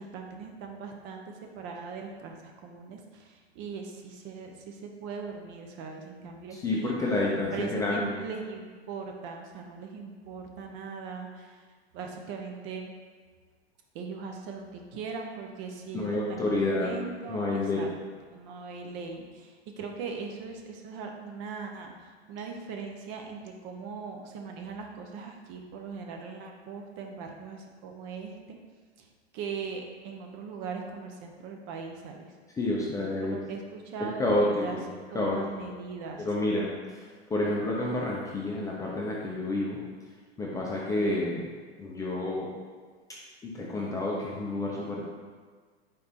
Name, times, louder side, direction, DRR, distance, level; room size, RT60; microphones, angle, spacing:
voice 1, 0.0-7.0 7.5-11.6 11.9-12.9 13.9-17.9 18.3-28.6 29.0-29.1 29.3-32.3 33.2-34.8 35.1-36.3, right 5 dB, 35° right, 3 dB, 0.6 m, -40 dB
voice 2, 6.6-8.2 15.9-16.9 17.3-17.9 32.6-33.4 34.2-34.8 35.1-35.4 36.2-39.8 40.4-41.4 41.8-42.5 43.4-45.0, left 2 dB, 10° left, -4 dB, 0.4 m, -29 dB
4.2 x 3.2 x 3.8 m, 1.5 s
figure-of-eight pair, 100°, 33 cm